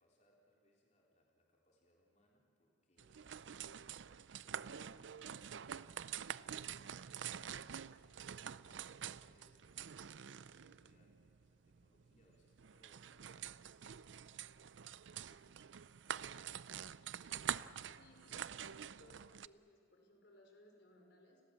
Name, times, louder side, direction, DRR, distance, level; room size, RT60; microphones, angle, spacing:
voice 1, 0.0-3.6 4.4-14.6 15.0-15.7 16.0-17.1, equal, 40° left, -2 dB, 3.7 m, -74 dB
sound 1, 3.0-19.5, right 8 dB, 85° right, 0.5 m, -47 dB
voice 2, 18.0-21.4, left 1 dB, 70° left, 2 dB, 4.9 m, -64 dB
30.0 x 21.5 x 7.6 m, 2.4 s
head